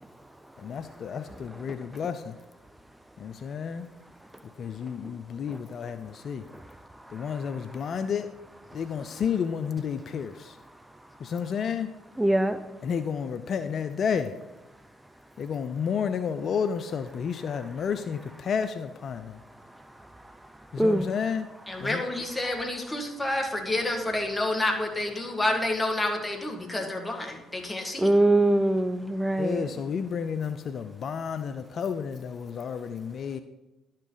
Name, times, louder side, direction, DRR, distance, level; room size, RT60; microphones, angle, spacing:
voice 1, 0.6-2.3 3.2-3.9 4.6-6.4 7.1-8.3 8.7-10.6 11.2-11.9 12.8-14.3 15.4-19.4 20.7-21.5 21.8-22.0 29.4-33.4, left 7 dB, 55° left, 10 dB, 0.5 m, -31 dB
voice 2, 12.2-12.6 20.8-21.1 28.0-29.7, right 1 dB, 10° right, 10 dB, 0.5 m, -22 dB
voice 3, 21.7-28.1, left 1 dB, 20° left, 3 dB, 1.9 m, -29 dB
11.5 x 6.4 x 4.0 m, 1.0 s
hypercardioid pair, 55°, 0 cm